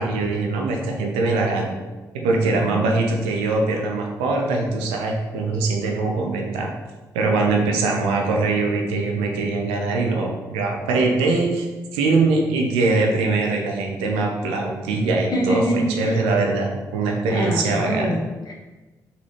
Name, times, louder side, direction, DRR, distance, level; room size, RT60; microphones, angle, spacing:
voice 1, 0.0-1.7 2.1-6.7 7.1-11.7 11.9-18.1, right 3 dB, 75° right, 1 dB, 0.5 m, -22 dB
voice 2, 15.3-16.2 17.3-18.5, equal, 45° left, -1 dB, 0.9 m, -25 dB
4.0 x 2.2 x 3.1 m, 1.2 s
hypercardioid pair, 40°, 10 cm